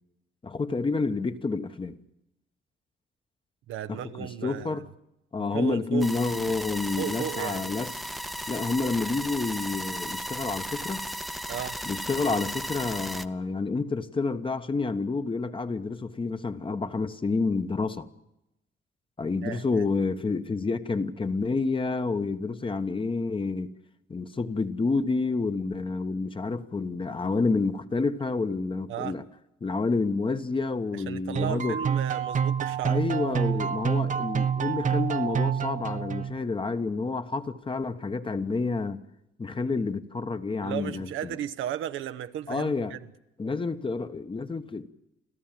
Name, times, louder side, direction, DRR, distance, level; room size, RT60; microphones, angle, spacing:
voice 1, 0.4-2.0 3.9-4.9 5.3-7.9 8.5-11.0 11.8-18.1 19.2-23.7 24.1-29.2 29.6-31.8 32.8-39.0 39.4-41.4 42.5-42.9 43.4-44.9, left 3 dB, 25° left, 1.1 m, -29 dB
voice 2, 3.7-4.8 5.4-6.1 7.0-7.7 11.5-11.8 19.4-19.8 28.9-29.2 30.9-33.0 40.6-43.1, right 11 dB, 85° right, 1.0 m, -35 dB
sound 1, 6.0-13.2, equal, ahead, 0.7 m, -35 dB
sound 2, 31.4-36.5, right 7 dB, 40° right, 0.9 m, -28 dB
30.0 x 13.0 x 7.5 m
cardioid pair, 90°, 20 cm